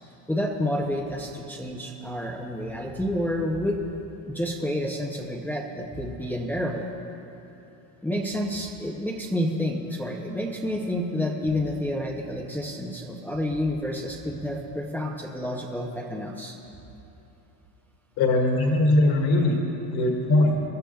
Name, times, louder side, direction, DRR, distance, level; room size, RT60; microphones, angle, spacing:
voice 1, 0.3-3.8 4.3-6.9 8.0-16.6, left 1 dB, 5° left, -2 dB, 0.5 m, -29 dB
voice 2, 18.2-19.6 19.9-20.6, left 2 dB, 55° left, 2 dB, 2.0 m, -20 dB
24.5 x 12.5 x 2.3 m, 2.9 s
cardioid pair, 155°, 47 cm